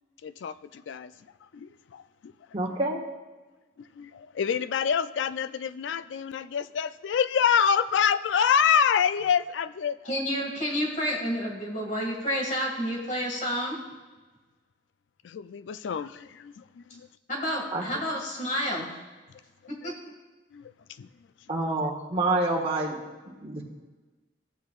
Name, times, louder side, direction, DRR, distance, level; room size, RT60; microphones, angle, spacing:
voice 1, 0.2-1.1 1.5-2.3 3.8-10.0 15.2-17.1 19.8-19.9 20.5-20.7 21.0-21.1, left 7 dB, 75° left, 14 dB, 0.4 m, -27 dB
voice 2, 2.5-3.0 17.7-17.8 21.5-23.0 23.2-23.6, right 2 dB, 30° right, -1 dB, 1.5 m, -27 dB
voice 3, 10.1-13.8 17.3-18.9 19.7-19.9, equal, 45° left, -1 dB, 2.0 m, -30 dB
14.5 x 8.1 x 2.4 m, 1.2 s
head